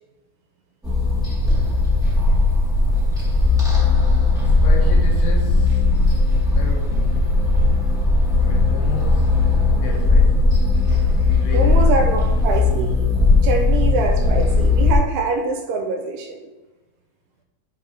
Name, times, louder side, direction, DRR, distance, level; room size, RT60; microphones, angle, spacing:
sound 1, 0.8-15.0, left 3 dB, 5° right, 0.5 m, -17 dB
voice 1, 4.4-5.9 6.5-7.3 8.4-9.4 9.8-10.5 11.2-11.8, left 5 dB, 70° left, 0 dB, 2.9 m, -34 dB
voice 2, 11.5-13.1 13.4-16.5, right 3 dB, 85° right, 3 dB, 2.9 m, -24 dB
8.5 x 3.5 x 5.1 m, 1.1 s
omnidirectional pair, 4.5 m